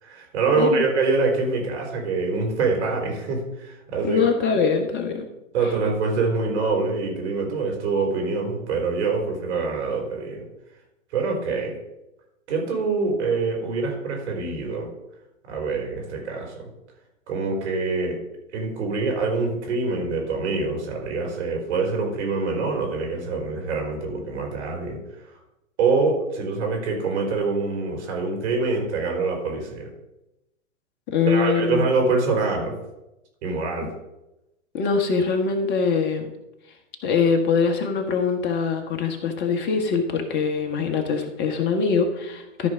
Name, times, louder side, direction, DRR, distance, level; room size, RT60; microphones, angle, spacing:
voice 1, 0.0-4.2 4.5-4.6 5.5-10.5 11.1-11.8 12.5-14.9 15.5-16.7 17.3-18.2 18.5-25.4 25.8-29.9 31.2-32.7 33.4-33.9, right 4 dB, 55° right, 1 dB, 4.1 m, -25 dB
voice 2, 4.0-5.3 31.1-31.8 33.8-33.9 34.7-36.3 37.0-42.7, left 5 dB, 25° left, 5 dB, 1.5 m, -23 dB
13.5 x 4.8 x 5.0 m, 0.91 s
hypercardioid pair, 125°, 40 cm